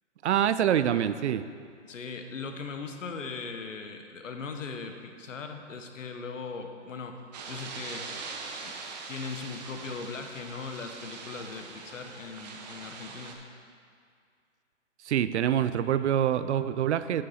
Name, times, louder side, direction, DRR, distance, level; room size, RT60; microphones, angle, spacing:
voice 1, 0.2-1.4 15.0-17.2, right 10 dB, 65° right, 13 dB, 0.5 m, -25 dB
voice 2, 1.9-7.2 7.5-8.1 8.6-8.8 9.1-13.4, left 4 dB, 85° left, 6 dB, 1.0 m, -39 dB
sound 1, 7.3-13.3, right 4 dB, 35° right, 0.8 m, -42 dB
10.0 x 5.5 x 4.2 m, 2.2 s
hypercardioid pair, 145°, 37 cm